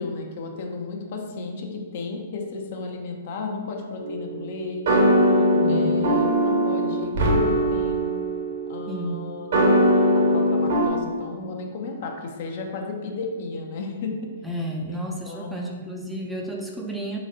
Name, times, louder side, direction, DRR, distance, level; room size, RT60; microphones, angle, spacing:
voice 1, 0.0-5.1 5.6-8.1 8.7-9.6 10.1-14.3 14.9-15.8, left 3 dB, 55° left, 2 dB, 0.6 m, -34 dB
sound 1, 4.0-10.9, equal, 65° right, 1.1 m, -21 dB
voice 2, 5.4-6.1 8.9-9.3 14.4-17.2, equal, 5° right, -1 dB, 0.4 m, -32 dB
4.0 x 3.2 x 2.7 m, 1.5 s
hypercardioid pair, 120°, 0 cm